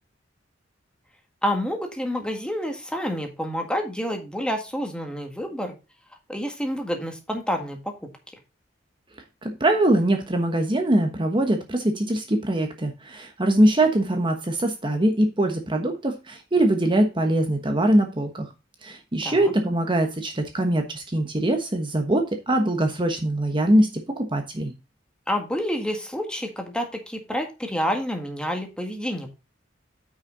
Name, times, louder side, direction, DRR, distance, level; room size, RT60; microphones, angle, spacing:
voice 1, 1.4-5.7 6.3-8.1 19.2-19.5 25.3-29.3, equal, 5° left, 4 dB, 1.8 m, -28 dB
voice 2, 9.4-18.5 18.8-24.7, right 1 dB, 25° right, 4 dB, 1.2 m, -22 dB
9.3 x 5.8 x 3.9 m, 0.28 s
head